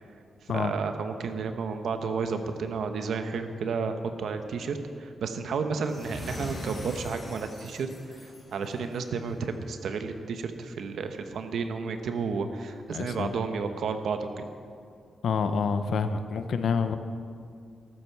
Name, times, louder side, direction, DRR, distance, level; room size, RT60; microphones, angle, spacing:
voice 1, 0.5-14.4, right 5 dB, 75° right, 7 dB, 1.0 m, -32 dB
sound 1, 5.8-9.1, left 1 dB, 30° left, 2.6 m, -41 dB
voice 2, 12.9-13.3 15.2-17.0, left 5 dB, 70° left, 9 dB, 0.8 m, -27 dB
14.0 x 12.5 x 4.7 m, 2.4 s
wide cardioid pair, 140°, 0 cm